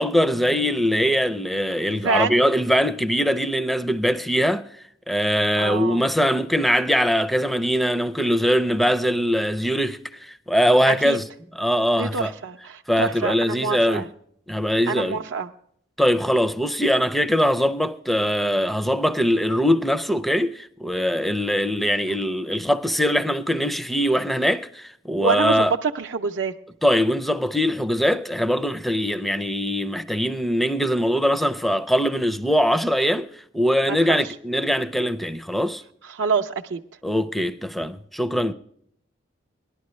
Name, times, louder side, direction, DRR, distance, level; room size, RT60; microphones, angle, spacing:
voice 1, 0.0-4.7 5.1-11.2 11.5-12.3 12.9-14.1 14.5-15.2 16.0-25.7 26.8-35.8 37.0-38.5, equal, ahead, 0.4 m, -22 dB
voice 2, 1.9-2.4 5.6-6.0 10.9-11.2 12.0-14.0 14.9-15.5 25.2-26.5 33.9-34.2 36.1-36.8, right 5 dB, 75° right, 0.6 m, -26 dB
18.0 x 11.5 x 3.1 m
head